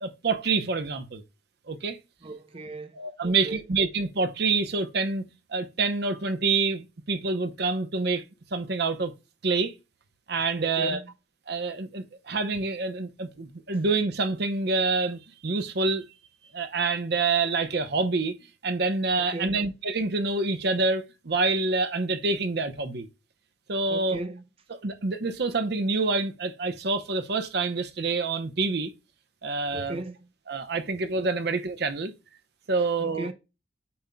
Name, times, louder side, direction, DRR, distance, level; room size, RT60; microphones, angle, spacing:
voice 1, 0.0-1.2 1.7-2.0 3.0-5.2 5.5-8.2 8.5-9.1 9.4-9.7 10.3-11.0 11.5-16.1 16.5-18.3 18.6-23.1 23.7-24.2 24.8-28.9 29.4-30.0 30.5-32.1 32.7-33.3, right 3 dB, 65° right, 0.8 m, -27 dB
voice 2, 2.2-3.6 10.6-11.1 19.2-19.6 23.9-24.4 29.7-30.3 32.8-33.3, right 2 dB, 30° right, 0.6 m, -37 dB
8.6 x 5.4 x 2.2 m
head